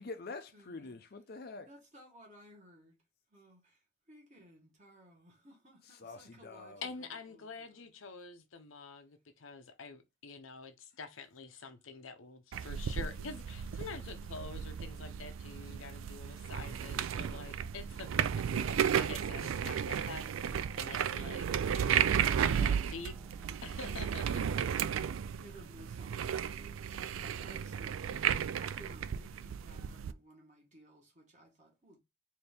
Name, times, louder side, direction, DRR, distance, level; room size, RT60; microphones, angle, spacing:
voice 1, 0.0-1.7 5.8-6.8, left 3 dB, 50° left, 0.5 m, -46 dB
voice 2, 0.5-1.0 1.7-2.9 3.3-7.9 23.8-23.9 24.3-32.0, right 1 dB, 35° right, 1.7 m, -58 dB
voice 3, 6.8-21.5 21.7-22.1 22.5-23.2 23.6-24.2, left 4 dB, 80° left, 0.8 m, -47 dB
sound 1, 12.5-30.1, right 8 dB, 80° right, 0.3 m, -34 dB
sound 2, 19.9-24.0, right 1 dB, 5° right, 0.7 m, -57 dB
4.3 x 2.8 x 3.4 m
head